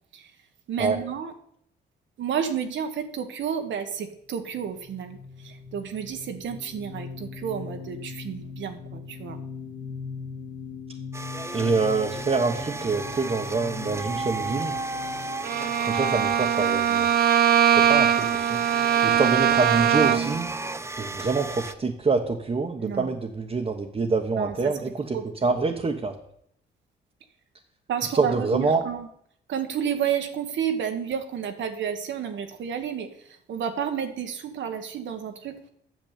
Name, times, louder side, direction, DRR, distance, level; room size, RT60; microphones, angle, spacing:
voice 1, 0.7-1.3 2.2-9.4 22.8-23.1 24.4-24.7 25.1-25.3 27.9-29.1 29.5-35.7, right 8 dB, 70° right, 7 dB, 1.6 m, -31 dB
sound 1, 4.5-16.9, left 5 dB, 85° left, 2.3 m, -40 dB
sound 2, 11.1-21.7, right 3 dB, 15° right, 0.7 m, -34 dB
voice 2, 11.5-14.8 15.8-17.1 17.7-18.6 19.0-20.5 21.0-26.1 28.1-28.8, right 4 dB, 30° right, 0 dB, 1.4 m, -26 dB
Bowed string instrument, 15.4-20.4, right 9 dB, 50° right, 0.6 m, -21 dB
9.4 x 7.3 x 8.4 m, 0.70 s
cardioid pair, 90°, 20 cm